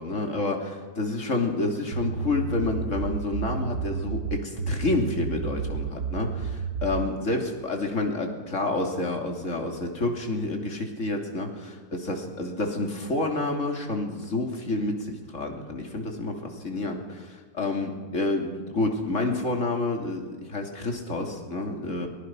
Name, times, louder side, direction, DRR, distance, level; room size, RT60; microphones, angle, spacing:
voice 1, 0.0-22.1, left 2 dB, 50° left, 2 dB, 3.3 m, -29 dB
sound 1, 1.9-7.1, right 5 dB, 75° right, 1.7 m, -31 dB
23.5 x 20.0 x 6.0 m, 1.5 s
omnidirectional pair, 1.7 m